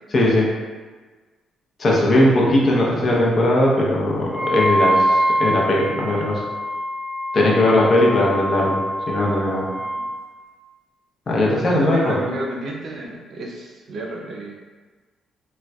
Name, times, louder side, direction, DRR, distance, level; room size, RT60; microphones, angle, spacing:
voice 1, 0.1-0.5 1.8-6.4 7.3-8.8 9.1-9.7 11.3-12.2, left 1 dB, 40° left, -4 dB, 0.7 m, -18 dB
Wind instrument woodwind instrument, 4.3-10.2, equal, 10° right, 0.9 m, -24 dB
voice 2, 11.7-14.6, right 1 dB, 60° right, -1 dB, 0.5 m, -31 dB
3.7 x 2.2 x 2.3 m, 1.4 s
cardioid pair, 90°, 0 cm